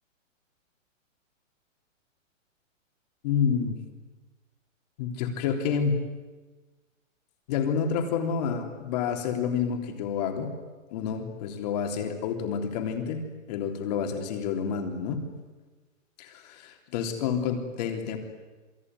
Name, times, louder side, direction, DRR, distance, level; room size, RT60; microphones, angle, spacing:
voice 1, 3.2-3.8 5.0-6.1 7.5-10.5 10.9-13.2 13.5-15.2 16.2-16.5 16.9-18.2, left 7 dB, 30° left, 5 dB, 3.6 m, -28 dB
28.5 x 21.5 x 9.7 m, 1.3 s
hypercardioid pair, 175°, 39 cm